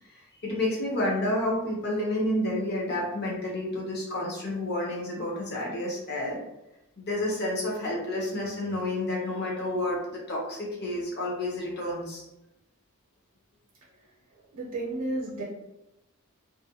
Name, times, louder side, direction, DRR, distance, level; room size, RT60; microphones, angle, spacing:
voice 1, 0.4-6.4 7.0-12.2, left 1 dB, 50° left, -3 dB, 0.7 m, -30 dB
voice 2, 14.5-15.4, right 2 dB, 70° right, -4 dB, 0.6 m, -32 dB
2.5 x 2.1 x 2.7 m, 0.90 s
head